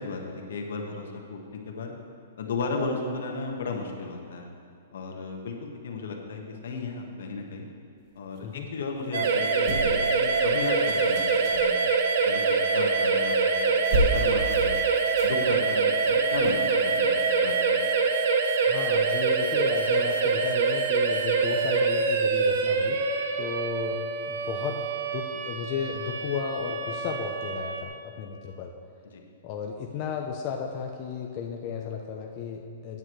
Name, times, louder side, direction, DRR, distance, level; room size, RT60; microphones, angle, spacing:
voice 1, 0.0-1.9 2.4-4.5 4.9-7.7 8.1-11.8 12.2-14.8 15.2-17.8 29.1-29.2, left 4 dB, 75° left, 1 dB, 1.6 m, -35 dB
sound 1, 9.1-27.8, right 4 dB, 55° right, 0.9 m, -25 dB
sound 2, 9.6-11.7 13.2-13.4 13.7-17.3 17.9-18.0, right 1 dB, 35° right, 1.3 m, -32 dB
voice 2, 18.6-23.0 23.4-24.8 25.1-28.7 29.4-33.0, left 7 dB, 30° left, 1 dB, 0.7 m, -34 dB
15.5 x 8.9 x 3.2 m, 2.4 s
hypercardioid pair, 165°, 0 cm